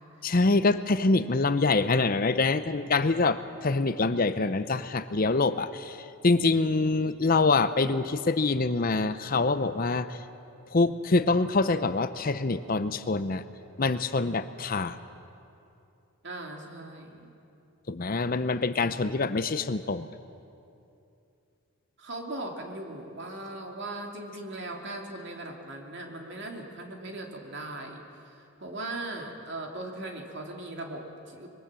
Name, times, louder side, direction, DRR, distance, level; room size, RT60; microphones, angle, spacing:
voice 1, 0.2-10.2 10.7-13.4 13.8-15.0 17.9-20.1, left 3 dB, 40° left, 12 dB, 0.6 m, -25 dB
voice 2, 16.2-17.3 22.0-31.5, right 2 dB, 50° right, 2 dB, 2.8 m, -39 dB
25.0 x 22.0 x 7.5 m, 2.7 s
head